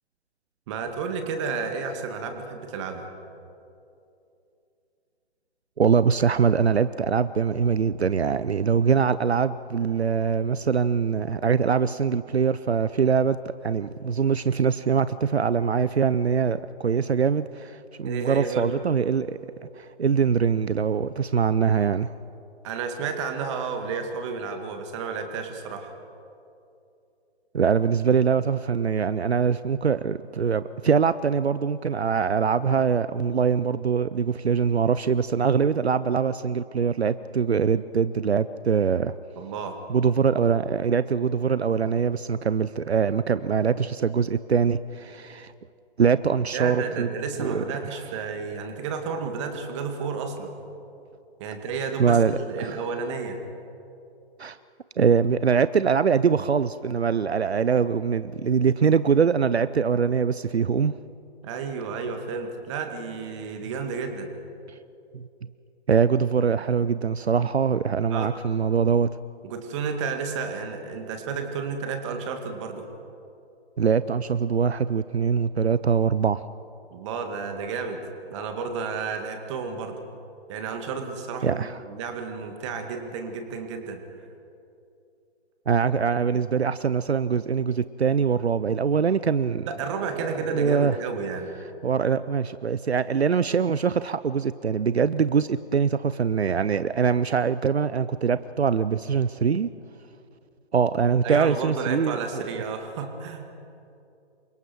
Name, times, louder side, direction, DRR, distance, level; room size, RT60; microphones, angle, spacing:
voice 1, 0.7-3.1 18.0-18.7 22.6-25.9 39.4-39.8 46.5-50.6 51.4-53.4 61.4-64.3 68.1-68.3 69.4-72.8 76.9-78.0 78.3-80.0 80.5-84.0 89.7-91.5 101.2-103.5, right 5 dB, 25° right, 5 dB, 2.1 m, -31 dB
voice 2, 5.8-19.4 19.7-22.1 27.5-39.1 39.9-45.5 46.0-47.1 47.4-47.6 52.0-52.3 52.6-52.8 54.4-54.6 55.0-60.9 65.1-65.2 65.9-69.1 73.8-76.4 81.4-81.8 85.7-89.7 90.5-91.0 91.8-99.7 100.7-102.4, right 6 dB, 75° right, 15 dB, 0.6 m, -23 dB
28.0 x 25.0 x 4.6 m, 2.7 s
figure-of-eight pair, 135°, 33 cm